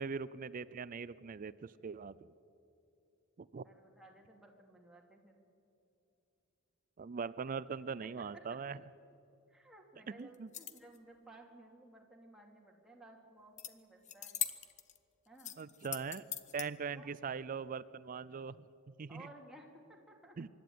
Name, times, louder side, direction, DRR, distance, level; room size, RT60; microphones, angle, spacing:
voice 1, 0.0-2.1 3.4-3.6 7.0-8.8 10.2-10.5 15.6-16.2 16.5-18.7 19.0-19.3 20.4-20.5, right 5 dB, 40° right, 18 dB, 0.4 m, -41 dB
voice 2, 3.5-5.4 8.2-8.4 9.5-14.3 15.3-15.5 16.9-17.1 19.1-20.4, right 1 dB, 5° right, -1 dB, 2.7 m, -57 dB
sound 1, 10.3-11.0 13.6-13.7 14.0-15.0 15.4-16.7, left 10 dB, 35° left, 0.8 m, -41 dB
25.0 x 12.0 x 9.4 m, 2.8 s
head